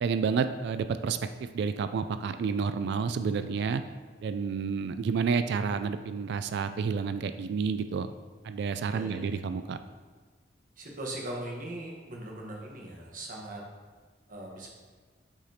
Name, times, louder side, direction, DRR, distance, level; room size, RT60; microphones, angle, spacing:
voice 1, 0.0-3.8 4.2-8.1 8.4-9.8, right 5 dB, 65° right, 11 dB, 0.3 m, -30 dB
voice 2, 8.9-9.4 10.8-13.6 14.3-14.7, right 1 dB, 50° right, -2 dB, 1.2 m, -40 dB
7.0 x 5.0 x 2.8 m, 1.5 s
head